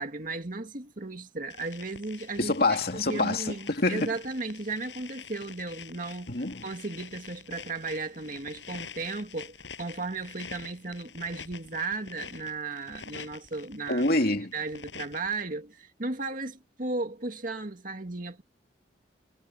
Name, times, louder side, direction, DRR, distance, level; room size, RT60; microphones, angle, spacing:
voice 1, 0.0-14.0 14.5-18.4, right 3 dB, 50° right, 2.2 m, -35 dB
sound 1, 1.5-15.4, left 6 dB, 85° left, 7.8 m, -46 dB
voice 2, 2.4-4.1 6.3-6.6 13.9-14.5, left 2 dB, 55° left, 2.7 m, -26 dB
head